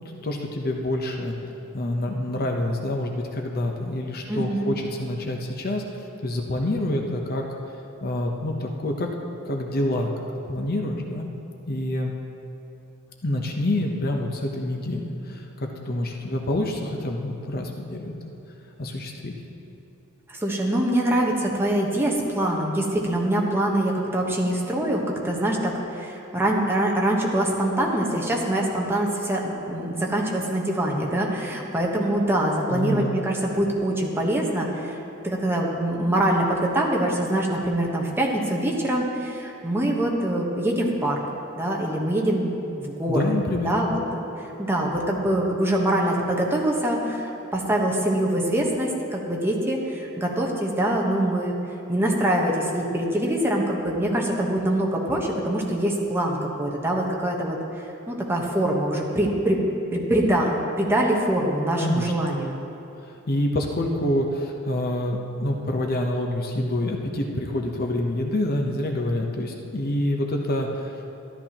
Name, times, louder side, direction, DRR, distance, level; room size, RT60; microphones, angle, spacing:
voice 1, 0.2-1.4 1.7-5.8 6.2-7.5 8.0-9.1 9.4-10.1 10.5-11.3 11.7-12.1 13.2-18.1 18.8-19.3 32.7-33.2 43.1-43.7 61.8-62.1 63.3-71.1, left 1 dB, 50° left, 2 dB, 0.9 m, -27 dB
voice 2, 4.3-4.7 20.3-35.0 35.2-41.2 41.6-43.3 43.6-44.0 44.6-51.6 51.9-57.6 58.1-59.6 59.9-62.6, right 1 dB, 10° right, -2 dB, 1.1 m, -24 dB
13.0 x 11.5 x 3.0 m, 2.9 s
head